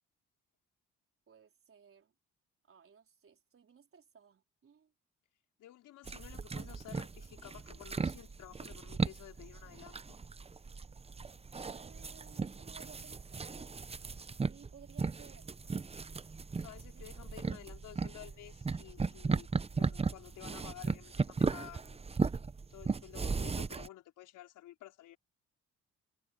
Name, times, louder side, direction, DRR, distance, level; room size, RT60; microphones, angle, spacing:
voice 1, 1.3-2.1 2.6-4.9 11.6-13.9 14.5-15.5 16.9-17.1, right 7 dB, 45° right, 4.3 m, -59 dB
voice 2, 5.6-10.2 16.6-22.0 22.7-25.2, left 14 dB, 90° left, 5.1 m, -52 dB
sound 1, 6.1-23.9, right 4 dB, 20° right, 0.7 m, -37 dB
cardioid pair, 90°, 30 cm